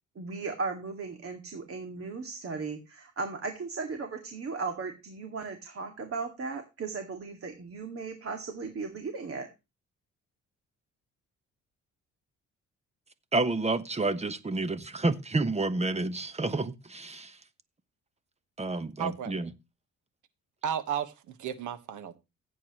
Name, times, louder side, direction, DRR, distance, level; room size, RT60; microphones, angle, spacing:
voice 1, 0.2-9.5, right 4 dB, 50° right, 2.1 m, -36 dB
voice 2, 13.3-17.4 18.6-19.5, right 2 dB, 20° right, 1.2 m, -29 dB
voice 3, 19.0-19.3 20.6-22.2, right 9 dB, 80° right, 1.4 m, -33 dB
16.0 x 8.6 x 3.1 m
cardioid pair, 90°, 30 cm